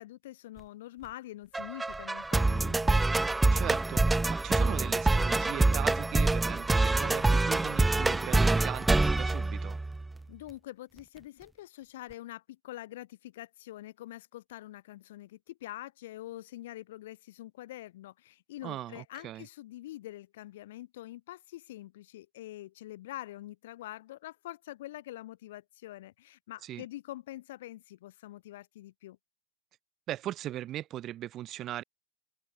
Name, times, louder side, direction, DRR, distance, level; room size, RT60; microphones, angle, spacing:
voice 1, 0.0-2.9 10.3-29.2, left 15 dB, 55° left, 2.9 m, -45 dB
sound 1, 1.5-10.1, right 2 dB, 10° right, 0.4 m, -26 dB
voice 2, 3.5-9.8 18.6-19.5 26.6-26.8 30.1-31.8, right 13 dB, 30° right, 1.0 m, -39 dB
open air
figure-of-eight pair, 90°, 0 cm